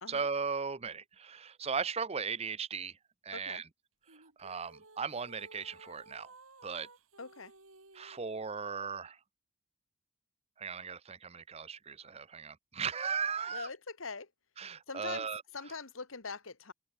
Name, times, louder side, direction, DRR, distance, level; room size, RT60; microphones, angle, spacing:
voice 1, 0.1-2.9 3.2-3.6 4.4-6.3 6.6-6.9 8.0-9.2 10.6-13.7 14.6-15.4, right 5 dB, 30° right, 0.7 m, -37 dB
voice 2, 3.3-3.6 7.2-7.5 13.5-14.3 14.9-16.7, left 4 dB, 75° left, 1.9 m, -43 dB
sound 1, 4.1-8.6, right 3 dB, 85° right, 4.8 m, -57 dB
open air
head